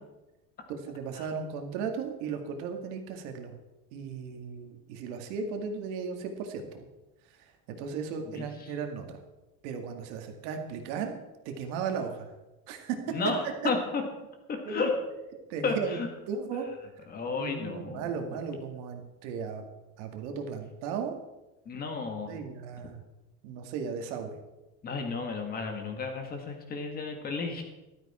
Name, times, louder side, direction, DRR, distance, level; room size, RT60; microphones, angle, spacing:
voice 1, 0.7-3.6 3.9-6.9 7.7-9.2 9.6-11.2 11.5-12.3 12.7-13.1 13.6-13.7 14.6-14.9 15.5-16.7 17.3-19.6 20.0-21.2 22.3-23.0 23.4-24.4, right 6 dB, 70° right, 5 dB, 2.1 m, -36 dB
voice 2, 8.4-8.7 13.1-14.0 14.5-14.9 15.6-16.1 17.1-18.2 21.7-22.3 24.8-27.6, left 4 dB, 25° left, 4 dB, 1.8 m, -32 dB
13.5 x 12.5 x 4.4 m, 1.0 s
cardioid pair, 170°, 37 cm